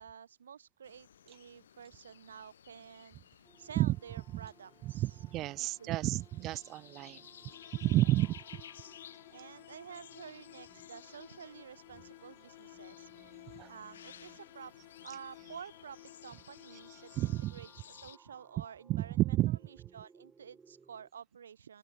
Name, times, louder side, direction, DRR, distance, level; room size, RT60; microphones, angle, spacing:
voice 1, 0.0-5.2 5.6-6.0 8.0-8.1 9.3-19.2 19.5-21.8, right 7 dB, 90° right, 1.6 m, -51 dB
sound 1, 0.8-18.2, left 9 dB, 80° left, 5.5 m, -56 dB
sound 2, 3.4-21.1, right 5 dB, 10° right, 3.8 m, -65 dB
voice 2, 4.8-7.2 7.8-8.4 13.6-13.7 17.1-17.6 18.9-19.6, right 16 dB, 30° right, 0.6 m, -30 dB
sound 3, 7.5-17.7, left 22 dB, 50° left, 4.9 m, -55 dB
open air
hypercardioid pair, 135°, 0 cm